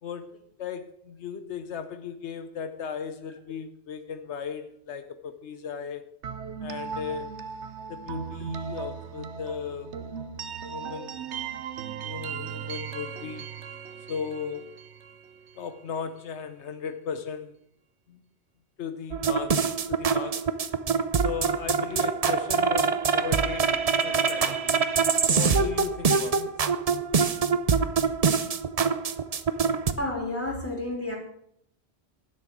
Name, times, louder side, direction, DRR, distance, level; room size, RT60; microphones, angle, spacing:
voice 1, 0.0-6.1 6.6-7.3 7.9-9.9 10.7-11.3 11.8-13.5 14.1-14.8 15.5-17.5 18.1-18.2 18.8-20.5 21.2-24.8 25.3-26.5, left 7 dB, 85° left, 1.2 m, -36 dB
sound 1, 6.2-16.0, right 7 dB, 85° right, 1.1 m, -37 dB
Stepy Loop, 19.1-29.9, right 5 dB, 40° right, 0.7 m, -25 dB
voice 2, 30.0-31.2, left 1 dB, 10° left, 3.5 m, -30 dB
11.5 x 6.5 x 8.5 m
omnidirectional pair, 1.1 m